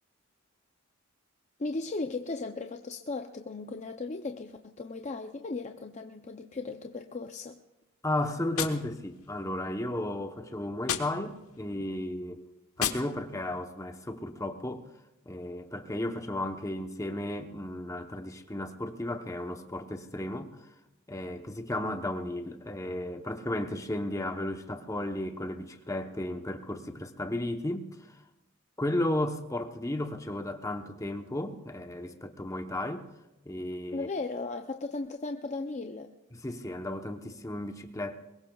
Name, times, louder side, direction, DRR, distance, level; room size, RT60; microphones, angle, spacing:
voice 1, 1.6-7.6 33.9-36.1, left 3 dB, 35° left, 0.5 m, -36 dB
voice 2, 8.0-12.4 12.8-14.9 15.3-20.7 21.1-28.2 28.8-33.0 33.4-34.1 36.3-38.2, left 1 dB, 15° left, 0.9 m, -34 dB
Gunshot gunfire, 8.5-9.6 10.8-11.7 12.8-13.6, left 8 dB, 85° left, 1.2 m, -36 dB
22.5 x 21.0 x 2.3 m
head